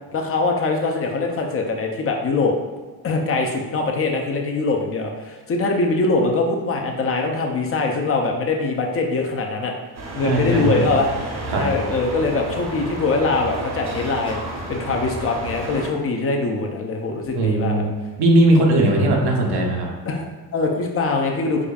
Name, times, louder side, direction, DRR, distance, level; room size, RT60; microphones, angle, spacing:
voice 1, 0.1-2.5 3.0-9.7 10.2-11.1 11.5-14.4 14.7-17.8 20.1-21.7, left 3 dB, 35° left, 1 dB, 0.4 m, -22 dB
sound 1, 9.9-15.9, right 2 dB, 45° right, 0.7 m, -31 dB
voice 2, 10.2-10.8 11.5-11.7 17.3-19.9, right 1 dB, 85° right, 0 dB, 0.8 m, -18 dB
4.9 x 2.3 x 2.3 m, 1.3 s
cardioid pair, 120°, 39 cm